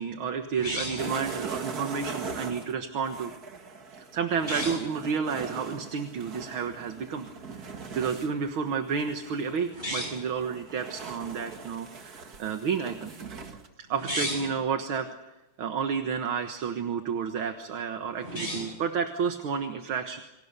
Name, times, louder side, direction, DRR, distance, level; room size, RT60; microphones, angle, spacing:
voice 1, 0.0-3.3 4.1-7.6 7.9-13.1 13.8-15.1 15.6-20.2, right 6 dB, 70° right, 6 dB, 2.2 m, -31 dB
sound 1, 0.6-1.2 4.4-4.9 9.7-10.3 13.9-14.6 18.2-18.8, equal, 20° right, 6.6 m, -34 dB
sound 2, 1.0-9.6 10.0-13.7, right 4 dB, 45° right, 2.3 m, -40 dB
29.0 x 25.0 x 6.8 m, 1.0 s
omnidirectional pair, 2.3 m